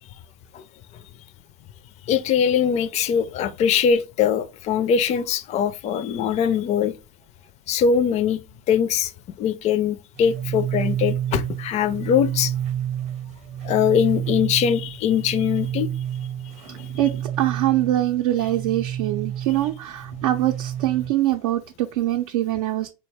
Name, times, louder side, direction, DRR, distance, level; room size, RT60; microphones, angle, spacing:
voice 1, 2.1-6.9 7.7-8.4 8.7-9.1 9.4-12.5 13.6-15.9 16.8-16.9, left 7 dB, 40° left, 0.4 m, -22 dB
sound 1, 10.2-21.1, right 10 dB, 40° right, 0.7 m, -30 dB
voice 2, 16.7-22.9, right 14 dB, 75° right, 0.5 m, -24 dB
4.0 x 2.1 x 3.3 m
hypercardioid pair, 90°, 18 cm